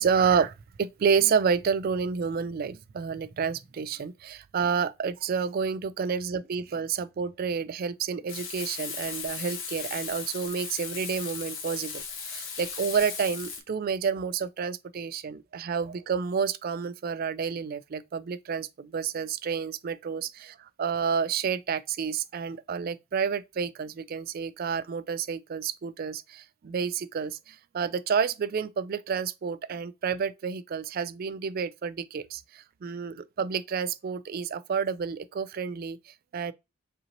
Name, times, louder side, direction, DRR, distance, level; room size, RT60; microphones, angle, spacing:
voice 1, 0.0-36.5, right 6 dB, 45° right, 0.3 m, -29 dB
Frying (food), 8.3-13.6, left 6 dB, 65° left, 1.1 m, -37 dB
5.2 x 2.9 x 2.8 m
head